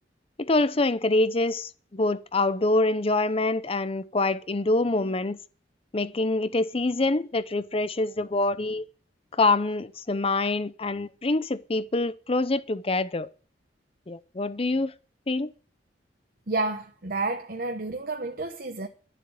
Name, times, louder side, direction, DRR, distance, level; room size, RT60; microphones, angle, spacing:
voice 1, 0.4-5.4 5.9-8.9 9.3-13.3 14.1-14.9 15.3-15.5, left 2 dB, 30° left, 0.6 m, -25 dB
voice 2, 16.5-18.9, right 2 dB, 55° right, 1.0 m, -30 dB
12.0 x 7.2 x 8.7 m
head